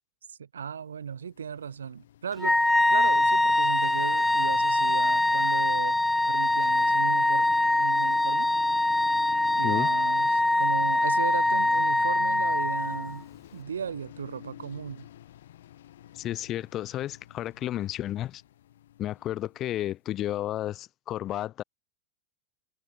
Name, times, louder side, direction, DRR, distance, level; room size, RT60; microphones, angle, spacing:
voice 1, 0.3-2.6 2.9-6.0 6.3-7.5 7.8-8.5 9.6-13.3 13.5-15.1, right 7 dB, 85° right, 2.5 m, -36 dB
sound 1, 1.0-20.0, left 12 dB, 75° left, 6.4 m, -49 dB
Wind instrument woodwind instrument, 2.4-13.2, left 2 dB, 5° left, 0.6 m, -23 dB
voice 2, 16.1-18.4 19.0-21.6, left 13 dB, 40° left, 2.6 m, -32 dB
hypercardioid pair, 95°, 0 cm